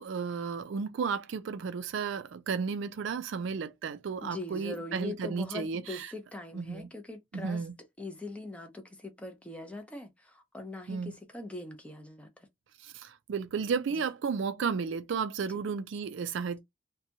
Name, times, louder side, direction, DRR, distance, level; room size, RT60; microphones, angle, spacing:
voice 1, 0.0-6.1 6.5-6.9 7.3-7.7 10.9-11.1 12.8-16.6, right 5 dB, 65° right, 0.4 m, -33 dB
voice 2, 4.2-7.6 8.0-12.5 13.9-14.0, left 2 dB, 5° left, 0.5 m, -42 dB
2.7 x 2.2 x 2.7 m
head